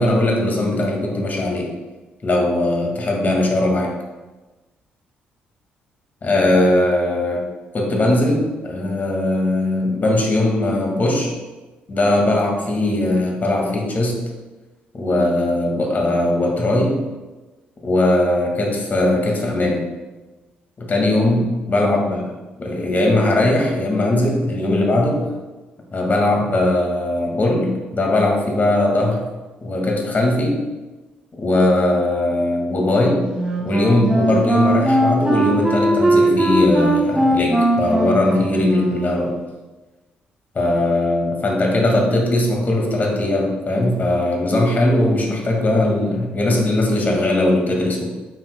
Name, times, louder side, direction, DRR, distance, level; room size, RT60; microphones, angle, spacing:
voice 1, 0.0-1.7 2.2-3.9 6.2-7.5 7.7-11.3 11.9-14.2 14.9-17.0 17.8-19.9 20.8-22.2 22.6-25.2 25.9-29.3 29.6-30.6 31.3-33.3 33.6-39.4 40.5-48.1, left 1 dB, 35° left, 0 dB, 2.0 m, -19 dB
Wind instrument woodwind instrument, 33.3-39.2, right 1 dB, 15° right, 1.9 m, -19 dB
8.9 x 6.1 x 2.2 m, 1.2 s
figure-of-eight pair, 45°, 5 cm